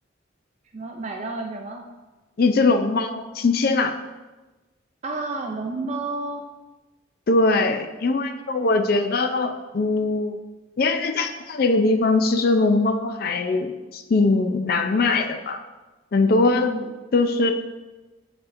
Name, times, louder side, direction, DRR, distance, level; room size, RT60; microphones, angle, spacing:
voice 1, 0.7-1.9 5.0-6.5 16.5-16.9, right 2 dB, 35° right, 2 dB, 0.4 m, -31 dB
voice 2, 2.4-4.0 7.3-10.4 10.8-15.6 16.1-16.7 17.1-17.5, left 3 dB, 50° left, 6 dB, 0.4 m, -21 dB
9.8 x 4.3 x 2.5 m, 1.2 s
head